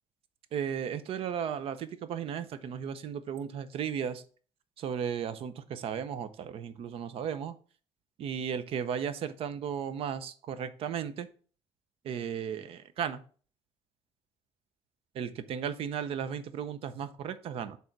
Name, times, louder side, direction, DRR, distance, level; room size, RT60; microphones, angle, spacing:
voice 1, 0.5-4.2 4.8-7.5 8.2-11.3 12.0-13.2 15.1-17.8, right 8 dB, 60° right, 12 dB, 0.6 m, -35 dB
6.5 x 3.5 x 5.8 m, 0.42 s
cardioid pair, 165°, 11 cm